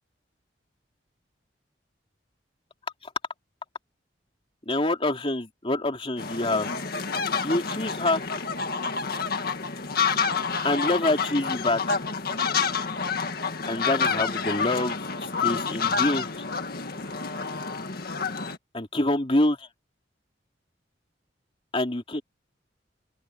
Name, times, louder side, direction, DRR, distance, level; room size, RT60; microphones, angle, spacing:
voice 1, 4.7-6.7 7.4-8.2 10.6-12.0 13.7-16.3 18.7-19.7 21.7-22.2, left 2 dB, 30° left, 3.0 m, -26 dB
sound 1, 6.2-18.6, left 5 dB, 55° left, 1.9 m, -28 dB
open air
head